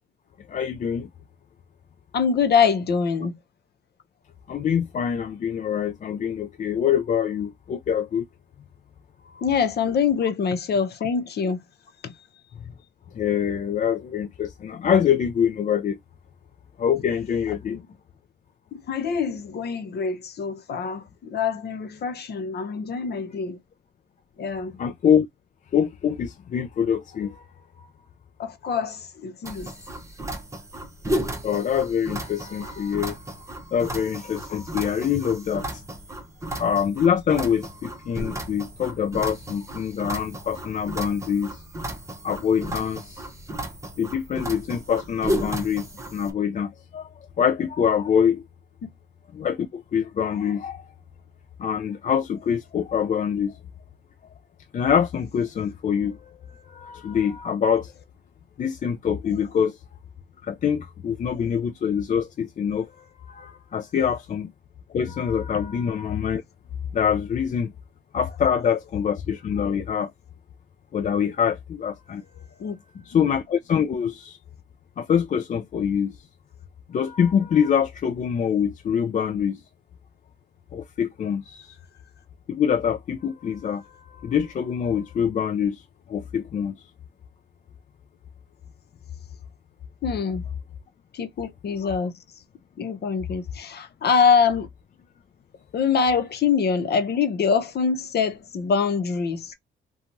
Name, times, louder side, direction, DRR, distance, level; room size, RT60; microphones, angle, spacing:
voice 1, 0.5-1.1 4.5-8.2 9.2-9.5 13.1-16.0 16.8-17.8 24.8-25.3 25.7-27.4 27.8-27.9 31.4-33.2 33.7-35.8 36.5-41.6 42.2-43.2 44.0-47.1 47.4-48.4 49.3-50.8 51.6-53.5 54.7-57.9 58.6-59.8 60.4-64.5 64.9-66.4 66.9-67.7 68.1-70.1 70.9-72.2 73.1-74.4 75.0-76.2 76.9-79.6 80.7-81.8 82.5-85.8 86.1-86.7, left 8 dB, 40° left, 0.4 m, -25 dB
voice 2, 2.1-3.4 9.4-11.6 12.0-12.1 17.7-17.8 18.7-23.6 24.4-24.7 28.4-29.7 72.6-72.8 90.0-90.4 91.1-92.1 92.8-94.7 95.7-99.5, left 6 dB, 55° left, 0.8 m, -24 dB
sound 1, 29.4-46.3, right 1 dB, 15° right, 0.8 m, -34 dB
2.9 x 2.3 x 2.5 m
cardioid pair, 90°, 20 cm